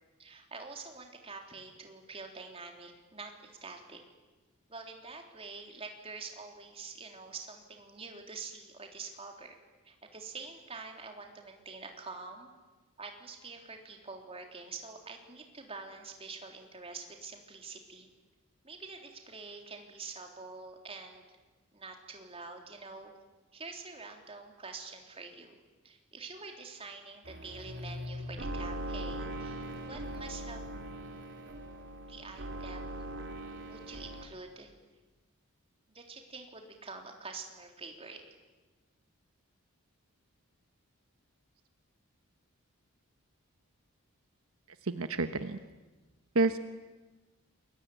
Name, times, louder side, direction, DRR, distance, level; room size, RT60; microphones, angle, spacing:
voice 1, 0.2-4.0 4.7-9.6 9.8-12.5 13.0-18.1 18.6-21.2 21.7-23.1 23.5-25.6 25.8-30.6 32.1-33.1 33.7-34.7 35.9-38.2, right 4 dB, 25° right, 3 dB, 3.6 m, -46 dB
sound 1, 27.2-34.3, right 1 dB, 55° right, 3.7 m, -40 dB
voice 2, 44.8-45.6 46.3-46.6, right 3 dB, 70° right, 9 dB, 1.2 m, -29 dB
28.0 x 22.0 x 9.3 m, 1.2 s
head